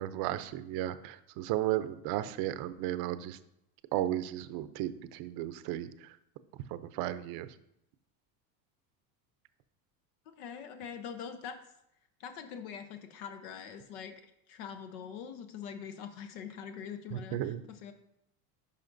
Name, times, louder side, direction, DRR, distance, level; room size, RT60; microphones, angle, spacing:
voice 1, 0.0-3.4 3.9-6.2 6.7-7.5 17.1-17.6, right 13 dB, 55° right, 13 dB, 0.6 m, -34 dB
voice 2, 10.4-11.6 12.2-17.9, left 7 dB, 85° left, 7 dB, 0.9 m, -43 dB
11.0 x 5.0 x 2.6 m, 0.79 s
supercardioid pair, 125°, 44 cm